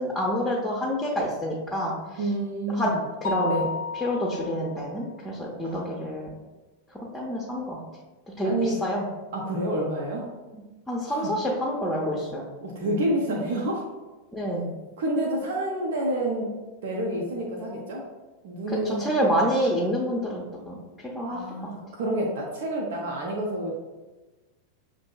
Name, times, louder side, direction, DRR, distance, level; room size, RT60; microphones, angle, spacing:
voice 1, 0.0-1.9 2.8-2.9 3.2-3.7 4.0-6.3 7.1-7.8 8.4-9.0 10.5-10.6 10.9-12.5 14.3-14.7 18.7-20.8 21.1-21.7, equal, 10° left, -3 dB, 0.7 m, -27 dB
voice 2, 2.2-3.0 3.4-3.6 5.6-6.1 8.4-8.8 9.3-10.3 11.0-11.3 12.6-13.9 15.0-16.6 16.8-18.0 18.4-19.1 21.2-23.7, right 1 dB, 55° right, -1 dB, 0.6 m, -29 dB
Mallet percussion, 3.2-5.0, left 4 dB, 55° left, 0.3 m, -32 dB
6.0 x 2.6 x 2.2 m, 1.2 s
figure-of-eight pair, 90°, 0 cm